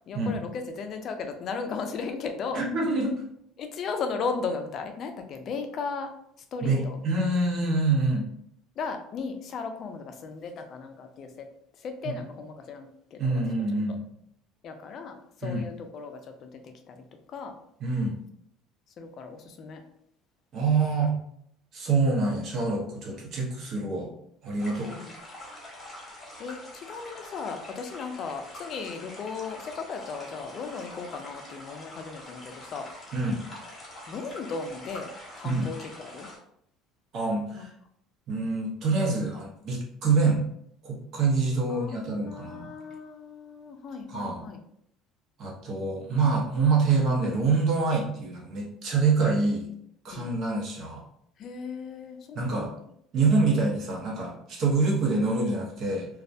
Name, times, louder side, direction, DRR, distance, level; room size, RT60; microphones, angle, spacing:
voice 1, 0.1-2.7 3.6-6.1 6.5-7.0 8.8-13.4 13.9-14.0 14.6-17.5 19.0-19.8 23.2-23.4 24.6-25.2 26.4-32.9 34.1-35.1 35.3-36.3 37.5-37.7 41.7-44.6 50.1-50.4 51.4-52.8, left 5 dB, 50° left, 6 dB, 0.4 m, -36 dB
voice 2, 2.5-3.1 6.6-8.3 12.0-12.1 13.2-14.0 15.4-15.6 17.8-18.1 20.5-21.1 21.7-24.1 24.4-25.0 33.1-33.4 35.4-35.7 37.1-37.7 38.3-40.5 40.8-42.7 44.1-44.4 45.4-49.7 50.0-51.0 52.3-52.7 53.1-56.1, right 3 dB, 55° right, -2 dB, 0.8 m, -26 dB
sound 1, 24.6-36.4, left 1 dB, 25° left, 0.9 m, -45 dB
2.3 x 2.1 x 2.6 m, 0.71 s
supercardioid pair, 100°, 0 cm